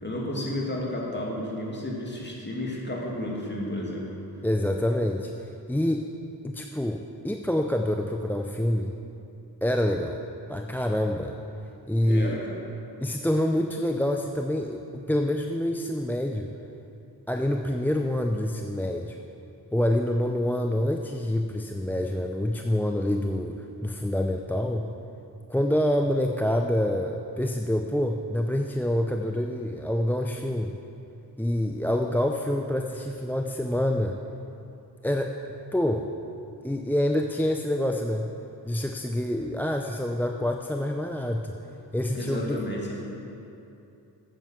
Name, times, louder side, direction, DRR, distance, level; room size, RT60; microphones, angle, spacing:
voice 1, 0.0-4.1 12.1-12.6 42.1-43.0, left 1 dB, 25° left, -3 dB, 2.6 m, -32 dB
voice 2, 4.4-5.3 5.7-6.1 6.4-8.9 9.6-10.2 10.5-11.4 11.9-12.4 13.0-16.5 17.3-19.2 19.7-24.9 25.5-30.8 31.4-34.2 35.0-35.3 35.7-36.1 36.6-38.3 38.6-41.5 41.9-42.6, left 1 dB, 5° left, 4 dB, 0.5 m, -26 dB
9.1 x 7.9 x 7.4 m, 2.7 s
cardioid pair, 65°, 41 cm